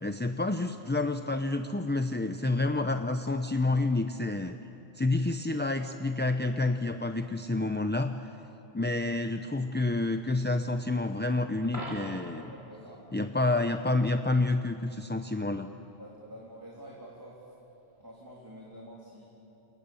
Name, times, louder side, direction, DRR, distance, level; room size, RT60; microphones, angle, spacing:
voice 1, 0.0-4.6 4.9-8.3 8.7-12.5 13.1-15.7, left 2 dB, 15° left, 7 dB, 0.5 m, -29 dB
Coin (dropping), 11.6-12.5 18.6-18.7, right 1 dB, 50° right, 5.6 m, -40 dB
voice 2, 12.3-13.0 16.0-17.4 18.0-19.3, equal, 20° right, -4 dB, 3.2 m, -48 dB
29.0 x 27.0 x 7.1 m, 3.0 s
omnidirectional pair, 1.1 m